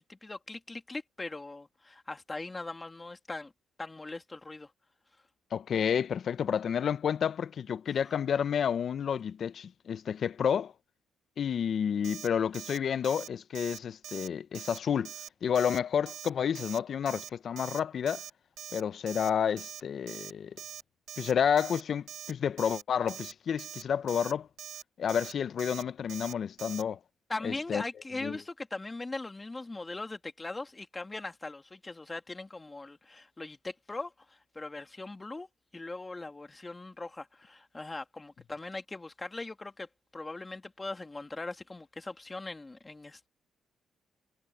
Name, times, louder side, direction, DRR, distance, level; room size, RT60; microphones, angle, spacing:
voice 1, 0.0-3.5 3.8-4.7 8.0-8.1 27.3-43.3, left 2 dB, 20° left, 2.7 m, -40 dB
voice 2, 5.5-10.7 11.4-15.1 15.4-18.2 18.7-20.6 21.2-24.5 25.0-27.0 27.4-27.8 28.2-28.4, left 8 dB, 55° left, 0.7 m, -30 dB
Alarm, 12.0-12.3 12.5-12.8 13.0-13.3 13.5-13.8 14.0-14.3 14.5-14.8 15.0-15.3 15.5-15.8 16.1-16.3 16.5-16.8 17.0-17.3 17.6-17.8 18.1-18.3 18.6-18.8 19.1-19.3 19.6-19.8 20.1-20.3 20.6-20.8 21.1-21.3 21.6-21.8 22.1-22.3 22.6-22.8 23.1-23.3 23.6-23.8 24.1-24.3 24.6-24.8 25.1-25.3 25.6-25.8 26.1-26.3 26.6-26.8, right 10 dB, 75° right, 1.7 m, -43 dB
cardioid pair, 90°, 0 cm